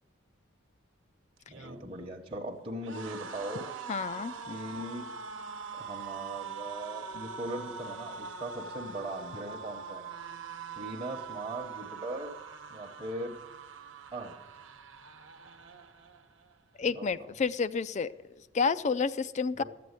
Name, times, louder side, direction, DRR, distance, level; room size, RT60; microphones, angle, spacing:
sound 1, 1.4-16.6 16.9-17.2 17.4-18.2, right 5 dB, 75° right, 1.0 m, -43 dB
voice 1, 1.5-3.7 4.5-5.0 5.7-10.1 10.8-12.3 12.7-13.3 14.1-14.3 16.8-17.1 19.5-19.6, right 1 dB, 25° right, -1 dB, 1.0 m, -39 dB
voice 2, 3.9-4.3 16.8-18.1 18.5-19.6, left 5 dB, 35° left, 15 dB, 0.4 m, -29 dB
13.5 x 7.7 x 9.5 m, 1.2 s
head